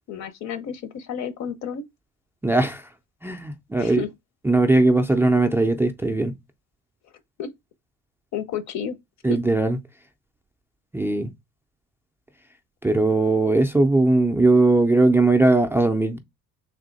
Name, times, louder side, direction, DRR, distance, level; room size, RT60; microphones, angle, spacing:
voice 1, 0.1-1.8 3.8-4.1 7.4-7.5 8.3-9.0 9.3-9.4, left 7 dB, 65° left, 0.8 m, -31 dB
voice 2, 2.4-2.8 3.2-4.0 4.5-6.3 9.2-9.8 10.9-11.3 12.8-16.2, right 2 dB, 10° right, 0.3 m, -19 dB
3.5 x 2.7 x 3.9 m
cardioid pair, 125°, 31 cm